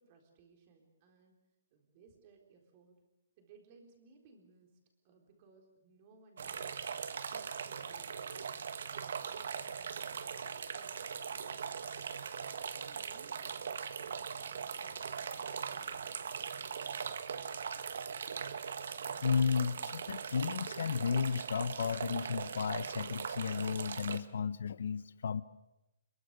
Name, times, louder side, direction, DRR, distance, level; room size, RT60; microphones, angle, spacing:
voice 1, 0.0-1.4 1.7-3.0 3.4-4.8 5.0-6.8 7.3-8.4 8.9-11.0 12.7-16.6, right 4 dB, 25° right, 3 dB, 4.0 m, -63 dB
sound 1, 6.4-24.2, right 6 dB, 60° right, 1.5 m, -40 dB
voice 2, 19.2-25.4, left 6 dB, 60° left, 15 dB, 1.0 m, -33 dB
28.5 x 22.5 x 6.7 m, 0.94 s
hypercardioid pair, 180°, 0 cm